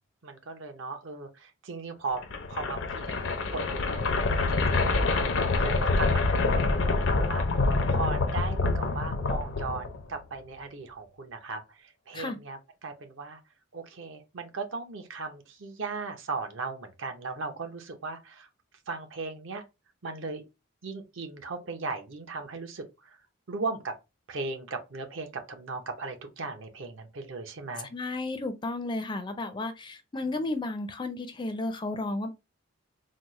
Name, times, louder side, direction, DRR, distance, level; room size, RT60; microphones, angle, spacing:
voice 1, 0.2-2.2 2.5-6.2 6.5-7.5 7.9-13.4 13.7-18.5 18.9-19.6 20.0-20.4 20.8-23.2 23.5-24.0 24.3-27.9 30.2-30.3, right 4 dB, 65° right, 0.7 m, -37 dB
sound 1, 2.2-10.2, left 3 dB, 70° left, 0.6 m, -26 dB
voice 2, 27.9-32.3, left 2 dB, 20° left, 0.4 m, -33 dB
4.1 x 2.0 x 3.0 m
head